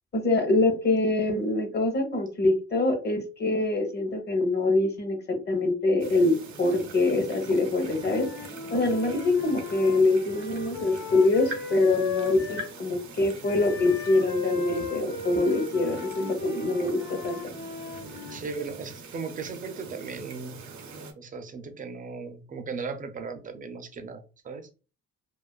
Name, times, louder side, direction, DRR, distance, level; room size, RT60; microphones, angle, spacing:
voice 1, 0.1-5.2 5.5-6.3 6.6-8.3 8.7-17.4, left 2 dB, 35° left, 5 dB, 0.7 m, -24 dB
sound 1, 6.0-21.1, right 4 dB, 75° right, 0.6 m, -43 dB
Wind instrument woodwind instrument, 7.7-12.7 13.4-18.4, left 4 dB, 80° left, 0.8 m, -36 dB
voice 2, 18.3-20.6 21.2-24.7, right 4 dB, 30° right, 8 dB, 0.4 m, -37 dB
2.4 x 2.3 x 2.2 m, 0.34 s
cardioid pair, 90°, 30 cm